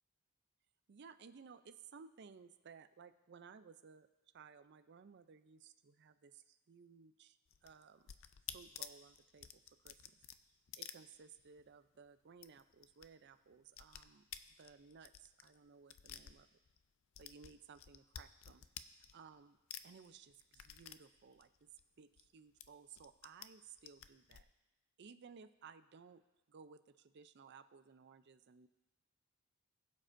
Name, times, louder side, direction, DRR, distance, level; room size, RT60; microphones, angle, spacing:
voice 1, 0.9-4.1 4.3-8.1 8.5-10.0 10.7-14.2 14.6-16.6 17.2-18.6 19.1-19.6 19.8-21.7 22.0-24.5 25.0-26.2 26.5-28.7, right 6 dB, 50° right, 11 dB, 0.4 m, -59 dB
sound 1, 7.5-11.7 11.9-12.0 12.3-13.1 13.3-16.8 17.1-19.4 19.7-22.3 22.6-23.5 23.8-24.4, left 10 dB, 60° left, 0.4 m, -52 dB
20.5 x 7.5 x 2.6 m, 1.1 s
head